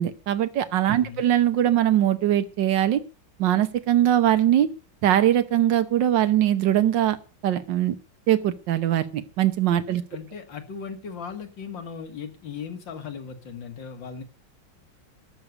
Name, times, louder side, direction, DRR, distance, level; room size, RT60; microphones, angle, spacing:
voice 1, 0.0-3.0 3.4-4.7 5.0-7.2 7.4-7.9 8.3-10.0, right 11 dB, 80° right, 10 dB, 1.7 m, -21 dB
voice 2, 10.1-14.2, left 6 dB, 90° left, 7 dB, 2.6 m, -37 dB
13.5 x 6.6 x 9.7 m, 0.35 s
omnidirectional pair, 2.0 m